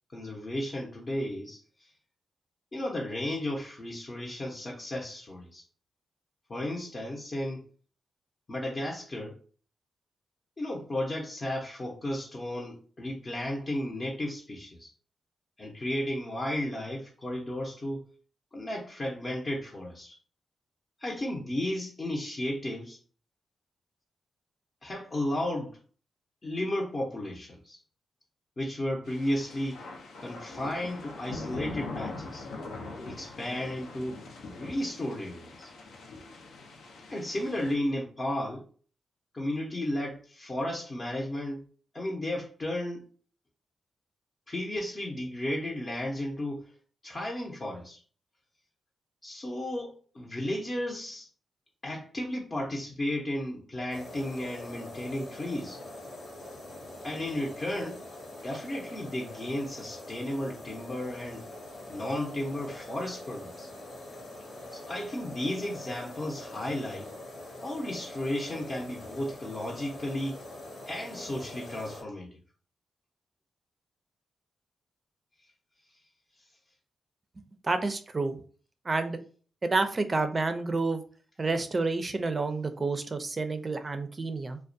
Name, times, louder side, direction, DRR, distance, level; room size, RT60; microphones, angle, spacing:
voice 1, 0.1-1.9 2.7-5.6 6.5-7.7 8.5-9.4 10.6-14.9 15.6-18.1 18.5-20.2 21.0-23.0 24.8-25.8 26.4-27.8 28.6-29.8 30.2-32.5 33.0-34.2 34.6-35.7 37.1-38.6 39.3-41.6 41.9-43.0 44.5-46.6 47.0-48.0 49.2-51.3 51.8-55.8 57.0-58.0 58.4-61.4 61.9-63.7 64.7-67.1 67.6-70.4 70.9-72.4, left 1 dB, 40° left, 0.6 m, -34 dB
sound 1, 29.1-37.7, left 3 dB, 90° left, 0.5 m, -42 dB
sound 2, 53.9-72.0, left 1 dB, 75° left, 0.9 m, -44 dB
voice 2, 77.6-78.4 78.9-79.2 79.6-81.0 81.4-84.6, right 3 dB, 35° right, 0.4 m, -29 dB
2.3 x 2.1 x 2.6 m
cardioid pair, 65°, 0 cm